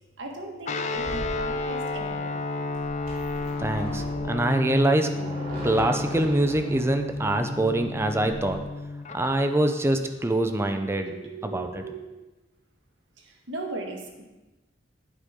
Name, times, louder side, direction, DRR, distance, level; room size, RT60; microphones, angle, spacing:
voice 1, 0.2-2.4 9.4-9.5 11.0-12.2 13.2-14.2, right 2 dB, 80° right, 1 dB, 1.6 m, -38 dB
Guitar, 0.7-9.2, left 3 dB, 40° left, 0.5 m, -32 dB
sound 1, 0.9-8.5, right 1 dB, 50° right, 2.9 m, -39 dB
voice 2, 3.6-5.1 5.6-8.6 9.1-11.1 11.4-11.7, right 1 dB, 15° right, 7 dB, 0.6 m, -24 dB
10.0 x 8.3 x 3.7 m, 1.1 s
head